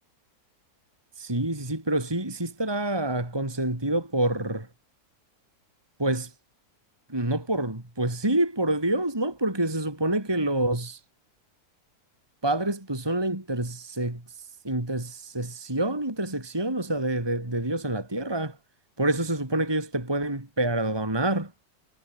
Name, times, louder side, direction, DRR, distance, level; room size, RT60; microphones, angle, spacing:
voice 1, 1.2-4.7 6.0-6.3 7.1-11.0 12.4-14.2 14.6-18.6 19.0-21.5, right 1 dB, 15° right, 2.9 m, -27 dB
omnidirectional pair, 1.7 m